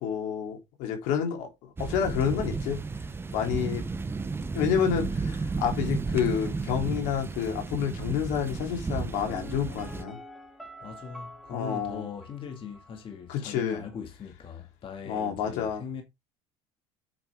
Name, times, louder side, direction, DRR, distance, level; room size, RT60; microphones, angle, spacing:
voice 1, 0.0-2.8 3.3-3.9 4.5-10.2 11.5-12.1 13.3-13.8 15.0-15.8, left 8 dB, 75° left, 3.4 m, -29 dB
sound 1, 1.8-10.0, right 4 dB, 15° right, 0.9 m, -33 dB
Piano, 9.3-13.0 13.3-13.4, equal, ahead, 3.4 m, -47 dB
voice 2, 10.8-16.0, left 6 dB, 40° left, 2.3 m, -40 dB
8.7 x 6.0 x 3.6 m
supercardioid pair, 100°, 13 cm